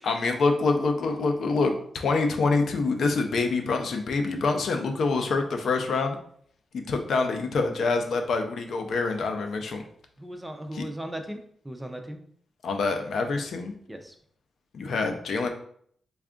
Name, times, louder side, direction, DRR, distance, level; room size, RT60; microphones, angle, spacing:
voice 1, 0.0-6.2 6.7-9.8 10.7-10.8 12.6-13.7 14.7-15.5, left 3 dB, 65° left, 5 dB, 0.5 m, -26 dB
voice 2, 10.2-11.4 11.6-12.2 13.9-14.1, right 1 dB, 10° right, 5 dB, 0.4 m, -37 dB
3.4 x 2.3 x 3.6 m, 0.62 s
wide cardioid pair, 140°, 0 cm